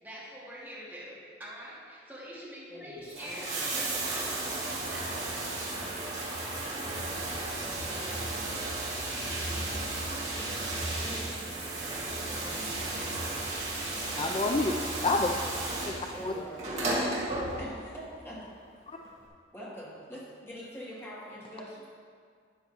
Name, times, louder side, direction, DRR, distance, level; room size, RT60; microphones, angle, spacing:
voice 1, 0.0-5.4, equal, 10° right, -9 dB, 2.6 m, -44 dB
voice 2, 2.7-3.8 11.0-11.7 12.2-14.0 16.0-16.6 17.6-18.5 19.5-21.9, equal, 15° left, -8 dB, 2.7 m, -45 dB
Bathtub (filling or washing), 3.0-17.9 19.1-19.2, right 2 dB, 40° right, 2.1 m, -34 dB
voice 3, 14.2-15.4 15.8-15.9 16.2-16.3 18.9-19.0, left 2 dB, 30° left, 1 dB, 0.4 m, -28 dB
12.0 x 9.2 x 3.0 m, 2.1 s
head